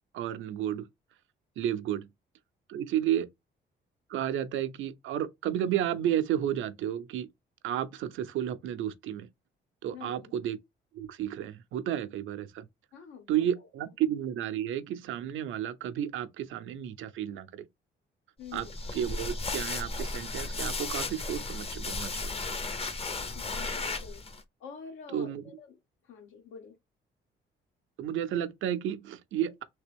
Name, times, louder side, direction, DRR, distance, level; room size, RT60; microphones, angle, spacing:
voice 1, 0.1-0.9 1.6-2.1 2.7-3.3 4.1-7.3 7.6-9.3 9.8-10.6 10.9-12.7 13.3-17.7 18.5-18.7 18.9-22.4 25.1-25.4 28.0-29.6, right 10 dB, 80° right, 0.6 m, -32 dB
voice 2, 9.9-10.3 12.9-13.7 18.4-18.7 23.3-24.3 24.6-26.8, left 6 dB, 85° left, 1.1 m, -47 dB
sound 1, 18.5-24.4, left 3 dB, 30° left, 0.7 m, -35 dB
3.4 x 2.9 x 3.3 m
cardioid pair, 90°, 20 cm